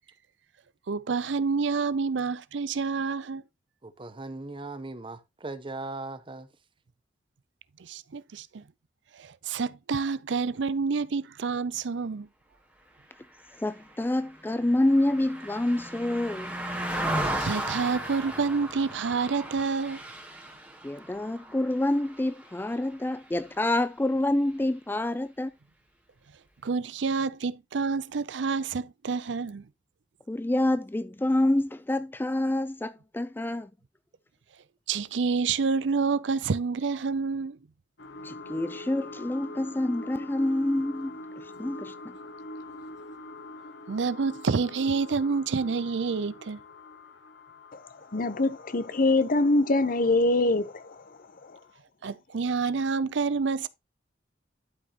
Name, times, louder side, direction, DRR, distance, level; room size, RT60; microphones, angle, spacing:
voice 1, 0.9-3.4 7.8-8.6 9.2-12.3 17.4-20.0 26.6-29.6 34.9-37.6 43.9-46.6 52.0-53.7, right 5 dB, 75° right, 0.5 m, -28 dB
voice 2, 3.8-6.5, right 2 dB, 30° right, 0.8 m, -38 dB
Car passing by, 13.5-23.0 23.4-23.6, right 1 dB, 10° right, 2.2 m, -35 dB
voice 3, 13.6-16.5 20.8-25.5 30.3-33.7 38.2-41.1 41.4-41.9, left 1 dB, 10° left, 0.4 m, -27 dB
sound 1, 38.0-51.1 51.6-51.7, left 1 dB, 70° left, 1.1 m, -44 dB
voice 4, 48.1-51.0, left 2 dB, 50° left, 0.8 m, -24 dB
12.0 x 5.3 x 2.9 m
head